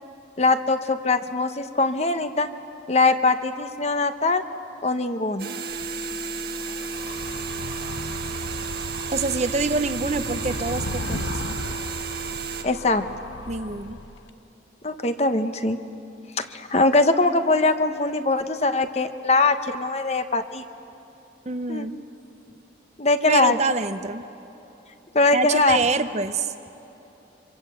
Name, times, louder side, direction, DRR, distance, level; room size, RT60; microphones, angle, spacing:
voice 1, 0.4-2.5 2.9-4.4 4.8-5.5 12.6-13.0 14.8-15.8 16.4-20.6 21.7-21.9 23.0-23.6 25.1-25.8, left 3 dB, 35° left, 8 dB, 1.0 m, -21 dB
sound 1, 5.4-12.6, right 6 dB, 55° right, 1.6 m, -33 dB
Animal, 5.7-14.3, left 2 dB, 85° left, 1.0 m, -35 dB
voice 2, 9.1-11.6 13.5-14.0 21.5-22.0 23.3-24.3 25.3-26.7, right 3 dB, 35° right, 10 dB, 0.7 m, -26 dB
26.5 x 25.0 x 8.0 m, 3.0 s
head